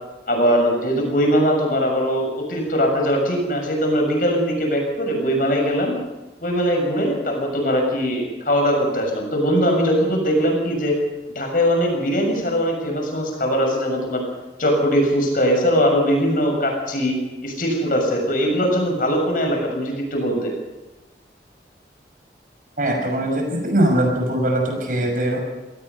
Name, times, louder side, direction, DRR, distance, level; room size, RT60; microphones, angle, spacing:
voice 1, 0.3-6.0 6.4-10.9 11.4-14.2 14.6-17.2 17.4-20.5, equal, 50° left, 2 dB, 6.9 m, -21 dB
voice 2, 22.8-25.4, right 1 dB, 50° right, 2 dB, 5.9 m, -21 dB
25.5 x 18.5 x 5.6 m, 1.1 s
head